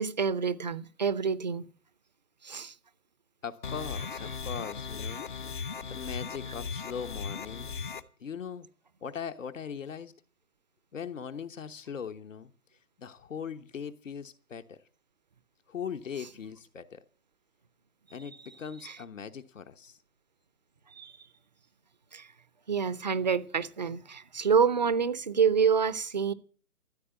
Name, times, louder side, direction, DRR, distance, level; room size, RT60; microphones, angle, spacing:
voice 1, 0.0-1.7 2.4-2.7 18.8-19.0 20.9-21.1 22.1-22.3 22.7-26.3, right 6 dB, 30° right, 0.6 m, -27 dB
voice 2, 3.4-8.7 9.0-10.1 10.9-12.5 13.0-14.8 15.7-17.0 18.1-20.0, left 7 dB, 60° left, 1.2 m, -40 dB
sound 1, 3.6-8.0, left 5 dB, 35° left, 0.7 m, -37 dB
14.5 x 8.1 x 9.9 m
figure-of-eight pair, 155°, 44 cm